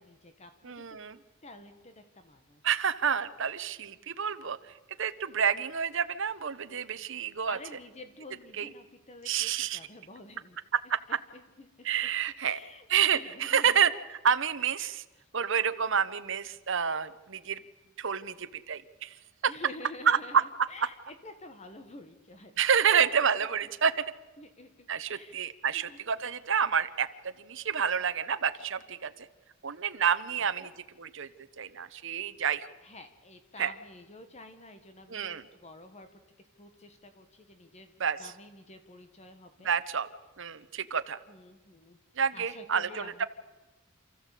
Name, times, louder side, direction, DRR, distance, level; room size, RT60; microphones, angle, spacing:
voice 1, 0.0-0.9 1.2-2.6 7.4-10.6 11.3-12.1 12.4-12.9 13.1-13.8 19.5-22.5 24.4-26.0 30.4-30.7 32.8-36.1 36.6-37.9 38.2-39.7 41.3-42.0 42.3-43.2, left 2 dB, 30° left, 8 dB, 1.3 m, -49 dB
voice 2, 0.6-1.2 2.6-4.6 5.0-7.6 8.6-8.7 9.2-9.8 10.7-11.0 11.8-12.6 12.9-13.9 14.2-15.0 15.3-17.6 18.0-19.2 19.4-19.5 20.1-20.4 22.6-24.0 24.9-27.1 27.4-29.3 29.6-30.7 31.0-31.3 31.6-32.7 33.6-33.7 35.1-35.5 38.0-38.3 39.6-40.1 40.4-41.2 42.2-43.2, right 7 dB, 65° right, 11 dB, 1.0 m, -28 dB
28.0 x 14.0 x 8.3 m, 1.2 s
head